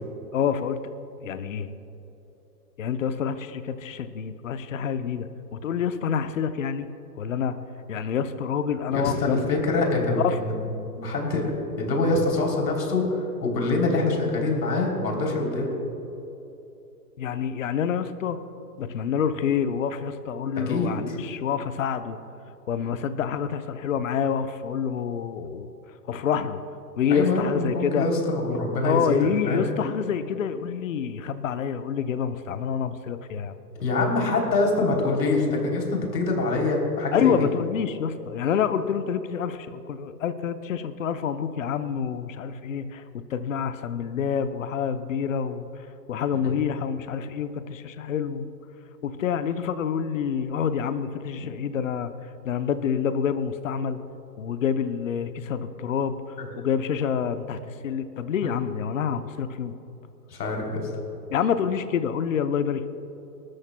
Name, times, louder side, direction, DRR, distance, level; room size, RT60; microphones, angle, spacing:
voice 1, 0.3-0.8 1.2-1.7 2.8-6.9 7.2-7.5 7.9-9.6 10.2-10.4 17.2-18.4 18.8-22.2 22.7-25.7 26.1-26.6 27.0-28.1 28.5-33.6 37.1-43.0 43.3-48.5 49.0-52.1 52.4-54.0 54.4-59.7 61.3-62.9, left 7 dB, 55° left, 10 dB, 0.7 m, -27 dB
voice 2, 8.9-10.5 10.9-15.7 20.5-20.9 27.1-29.7 33.8-37.5 46.4-46.5 51.4-51.5 56.4-56.5 60.3-60.9, left 2 dB, 85° left, 0 dB, 3.4 m, -25 dB
25.5 x 13.0 x 2.2 m, 2.9 s
hypercardioid pair, 175°, 48 cm